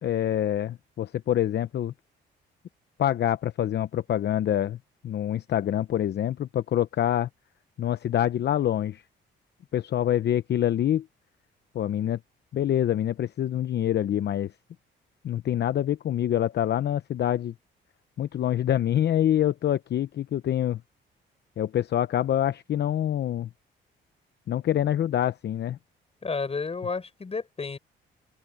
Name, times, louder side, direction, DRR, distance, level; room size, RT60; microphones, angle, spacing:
voice 1, 0.0-1.9 3.0-4.8 5.0-7.3 7.8-9.0 9.7-11.1 11.7-12.2 12.5-14.5 15.2-17.5 18.2-20.8 21.6-23.5 24.5-25.8, left 11 dB, 60° left, 0.8 m, -26 dB
voice 2, 26.2-27.8, left 4 dB, 30° left, 5.1 m, -31 dB
open air
cardioid pair, 90°, 20 cm